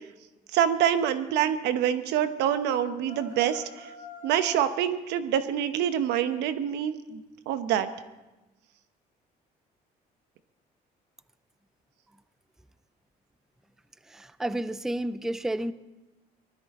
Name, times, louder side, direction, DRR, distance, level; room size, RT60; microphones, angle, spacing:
voice 1, 0.5-3.9 4.2-7.9, right 9 dB, 90° right, 11 dB, 1.0 m, -26 dB
sound 1, 2.6-4.8, right 1 dB, 50° right, 7.1 m, -43 dB
voice 2, 14.1-15.7, right 1 dB, 5° right, 15 dB, 0.4 m, -31 dB
19.5 x 13.0 x 4.2 m, 1.1 s
cardioid pair, 110°, 17 cm